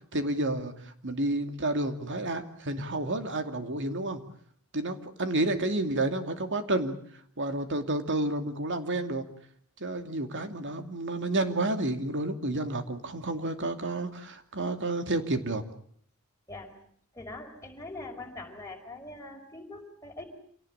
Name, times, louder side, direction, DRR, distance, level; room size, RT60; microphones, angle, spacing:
voice 1, 0.1-4.2 4.7-6.9 7.4-9.2 9.8-15.6, right 2 dB, 55° right, 8 dB, 2.6 m, -30 dB
voice 2, 17.1-20.2, left 2 dB, 15° left, 1 dB, 5.6 m, -42 dB
27.5 x 18.0 x 8.7 m, 0.63 s
head